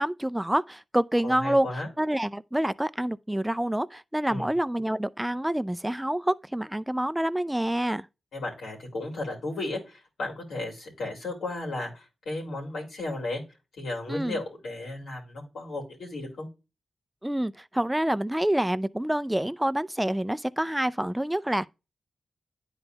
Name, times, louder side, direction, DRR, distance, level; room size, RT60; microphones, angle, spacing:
voice 1, 0.0-1.7 2.0-8.1 14.1-14.4 17.2-21.7, right 1 dB, 10° right, 0.4 m, -27 dB
voice 2, 1.2-1.9 4.3-4.5 8.3-13.4 13.8-16.5, left 2 dB, 80° left, 2.7 m, -34 dB
10.5 x 4.0 x 2.3 m
supercardioid pair, 40°, 0 cm